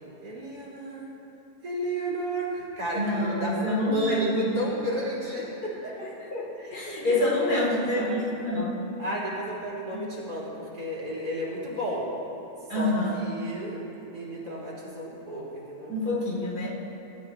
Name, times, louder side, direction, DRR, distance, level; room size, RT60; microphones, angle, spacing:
voice 1, 0.2-1.1 1.6-5.9 6.5-8.3 9.0-12.1 12.7-16.0, right 1 dB, 85° right, -7 dB, 3.8 m, -33 dB
voice 2, 2.9-4.4 6.0-8.8 12.7-13.2 15.9-16.7, left 1 dB, 80° left, -5 dB, 3.3 m, -27 dB
22.0 x 12.0 x 2.9 m, 2.9 s
omnidirectional pair, 1.7 m